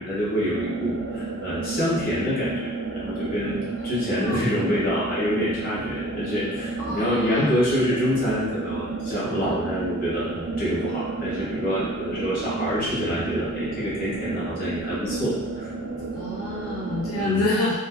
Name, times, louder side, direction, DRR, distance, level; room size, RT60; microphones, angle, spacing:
voice 1, 0.0-15.7 17.1-17.5, equal, 40° left, -8 dB, 0.9 m, -26 dB
sound 1, 0.5-17.2, right 3 dB, 55° right, 0.3 m, -32 dB
voice 2, 4.1-4.4 6.8-7.4 16.1-17.8, left 2 dB, 85° left, -5 dB, 0.5 m, -27 dB
2.4 x 2.3 x 2.2 m, 1.1 s
head